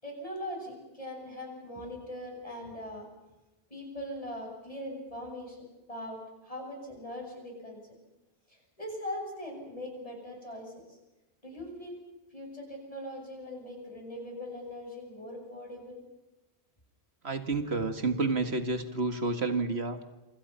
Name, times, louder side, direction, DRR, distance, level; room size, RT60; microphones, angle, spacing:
voice 1, 0.0-3.1 3.7-7.9 8.5-11.0 11.4-12.0 12.3-16.0 17.6-17.8, left 1 dB, 35° left, 1 dB, 7.8 m, -41 dB
voice 2, 17.2-20.0, right 3 dB, 85° right, 8 dB, 2.2 m, -30 dB
27.5 x 26.5 x 5.7 m, 1.0 s
omnidirectional pair, 1.1 m